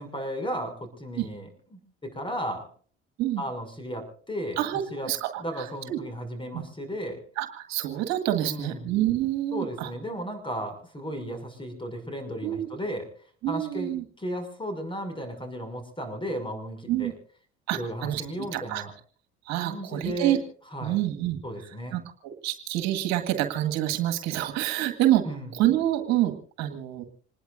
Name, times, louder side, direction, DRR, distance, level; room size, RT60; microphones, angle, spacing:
voice 1, 0.0-2.7 3.4-4.6 4.9-5.1 5.4-7.2 8.4-8.9 9.5-13.1 13.5-13.9 14.2-17.1 17.7-18.9 19.6-20.4 20.7-21.0 21.4-22.0 25.3-25.5, equal, 15° left, 8 dB, 6.4 m, -34 dB
voice 2, 5.1-6.0 6.5-6.6 7.4-9.9 12.4-12.7 13.4-14.0 16.9-17.1 17.7-18.2 18.5-18.8 19.5-20.4 20.8-21.4 21.9-25.3 25.5-27.0, right 13 dB, 65° right, 6 dB, 1.9 m, -27 dB
27.0 x 20.5 x 2.6 m, 0.43 s
hypercardioid pair, 60°, 29 cm